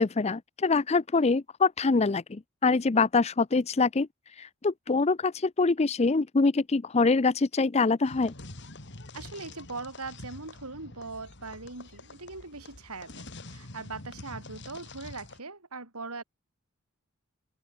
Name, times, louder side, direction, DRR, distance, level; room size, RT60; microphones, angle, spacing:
voice 1, 0.0-4.1 4.4-8.3, left 4 dB, 30° left, 0.5 m, -25 dB
sound 1, 8.1-15.4, left 2 dB, 55° left, 3.6 m, -46 dB
voice 2, 9.1-16.2, right 3 dB, 85° right, 4.1 m, -41 dB
open air
head